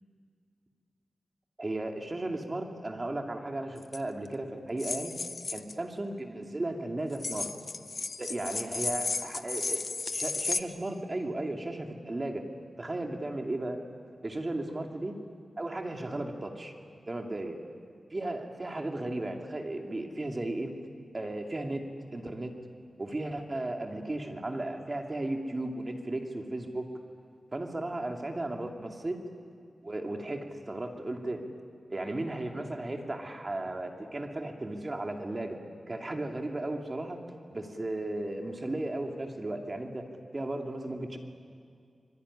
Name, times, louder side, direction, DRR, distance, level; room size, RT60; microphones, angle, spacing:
voice 1, 1.6-5.2 5.5-7.5 8.2-12.4 12.8-13.8 14.2-15.2 15.6-16.7 17.0-17.6 18.1-20.7 21.1-21.9 22.1-22.5 23.0-26.9 27.5-29.2 29.8-31.5 31.9-35.6 35.9-37.2 37.5-40.0 40.3-41.2, right 2 dB, 30° right, 3 dB, 2.6 m, -35 dB
sound 1, 3.8-4.0 4.8-5.7 7.1-10.6, left 3 dB, 50° left, 0.8 m, -34 dB
25.0 x 22.0 x 9.9 m, 2.3 s
wide cardioid pair, 110°, 0 cm